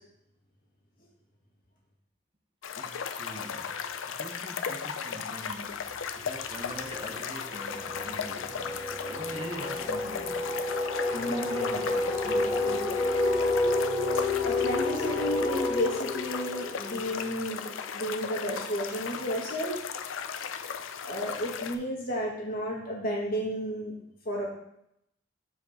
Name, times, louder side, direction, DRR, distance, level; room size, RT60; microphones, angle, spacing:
sound 1, 2.6-21.8, left 7 dB, 85° left, 0.5 m, -36 dB
voice 1, 2.7-3.8 4.1-10.7 11.1-13.2, equal, 25° right, 0.7 m, -43 dB
sound 2, 5.7-6.0 6.3-17.9, left 2 dB, ahead, 1.8 m, -30 dB
voice 2, 11.1-11.5 14.4-19.8 21.0-23.9 24.2-24.5, equal, 45° left, 1.8 m, -32 dB
7.0 x 4.7 x 4.3 m
head